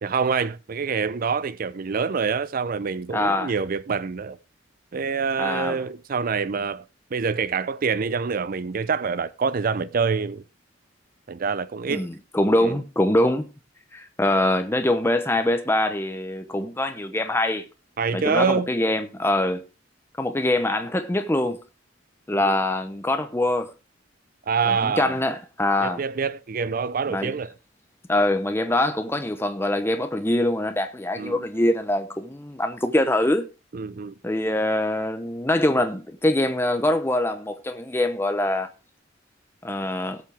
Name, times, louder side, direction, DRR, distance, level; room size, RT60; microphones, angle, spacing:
voice 1, 0.0-4.4 4.9-6.8 7.1-10.4 11.3-12.1 12.5-12.8 18.0-18.7 22.3-22.6 24.5-25.1 25.8-27.5 31.2-31.5 33.7-34.1, right 5 dB, 50° right, 0.5 m, -26 dB
voice 2, 3.1-3.5 5.4-5.8 11.9-13.5 13.9-17.6 18.1-19.6 20.2-21.6 22.3-23.7 24.6-26.0 27.1-27.3 28.1-33.4 34.2-38.7 39.6-40.2, left 1 dB, 15° left, 0.7 m, -24 dB
17.5 x 7.4 x 3.4 m
head